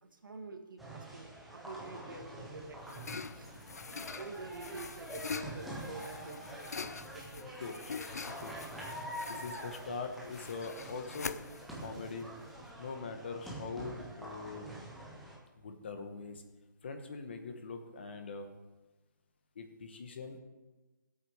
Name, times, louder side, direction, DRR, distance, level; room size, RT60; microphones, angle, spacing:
voice 1, 0.0-3.1 3.3-3.6 3.9-7.6 8.2-8.3, right 3 dB, 90° right, 5 dB, 1.8 m, -48 dB
sound 1, 0.8-15.4, right 1 dB, ahead, 0.3 m, -46 dB
sound 2, 2.3-12.8, left 5 dB, 50° left, 0.5 m, -45 dB
voice 2, 8.2-8.5 9.3-11.4 11.8-12.3 12.8-14.7 15.6-16.4 16.8-18.5 19.5-20.4, left 4 dB, 30° left, 6 dB, 1.1 m, -42 dB
14.5 x 8.4 x 4.8 m, 1.2 s
hypercardioid pair, 175°, 11 cm